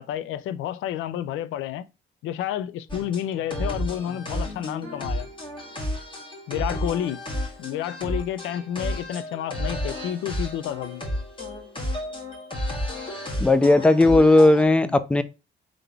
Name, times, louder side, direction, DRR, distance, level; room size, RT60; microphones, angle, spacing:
voice 1, 0.0-1.9 2.2-5.3 6.5-7.2 7.6-11.0 14.8-15.0, left 11 dB, 85° left, 0.4 m, -30 dB
sound 1, 2.9-14.6, left 1 dB, 25° left, 1.7 m, -32 dB
voice 2, 13.4-15.2, left 2 dB, 5° left, 0.4 m, -16 dB
3.8 x 3.4 x 3.3 m
cardioid pair, 90°, 20 cm